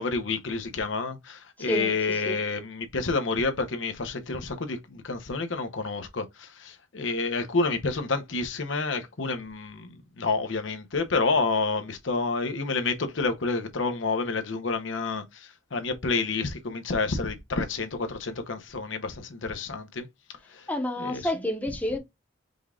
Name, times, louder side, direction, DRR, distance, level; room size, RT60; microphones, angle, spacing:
voice 1, 0.0-20.1 20.5-20.7 21.0-21.2, left 3 dB, 85° left, 0.8 m, -29 dB
voice 2, 1.6-2.4 20.7-22.0, left 1 dB, 10° left, 0.8 m, -29 dB
5.2 x 2.4 x 3.6 m
head